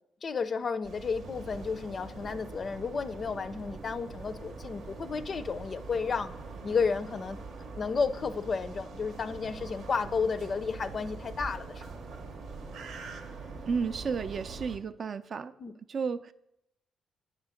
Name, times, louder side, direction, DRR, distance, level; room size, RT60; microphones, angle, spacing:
voice 1, 0.2-6.3 6.6-7.4 7.8-11.8 15.6-15.7, left 5 dB, 45° left, 13 dB, 0.4 m, -32 dB
sound 1, 0.8-14.8, right 4 dB, 80° right, 0.8 m, -45 dB
sound 2, 1.2-14.6, right 2 dB, 25° right, 0.7 m, -49 dB
voice 2, 13.7-15.5 15.9-16.3, right 5 dB, 50° right, 12 dB, 0.4 m, -32 dB
8.0 x 3.7 x 6.3 m, 0.81 s
cardioid pair, 90°, 0 cm